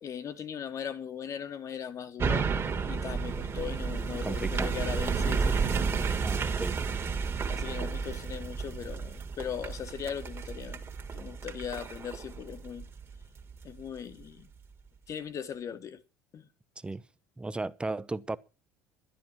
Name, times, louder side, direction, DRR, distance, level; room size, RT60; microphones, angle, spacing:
voice 1, 0.0-2.5 2.8-6.1 7.5-10.8 11.1-12.9 13.6-14.5 15.1-16.0 16.3-16.4, left 8 dB, 40° left, 1.3 m, -39 dB
sound 1, 2.2-13.6 14.1-14.2, right 5 dB, 30° right, 2.0 m, -32 dB
voice 2, 4.2-4.7 6.2-6.8 16.8-17.0 17.4-18.4, right 2 dB, 10° right, 0.7 m, -35 dB
11.5 x 10.0 x 6.0 m
figure-of-eight pair, 65°, 8 cm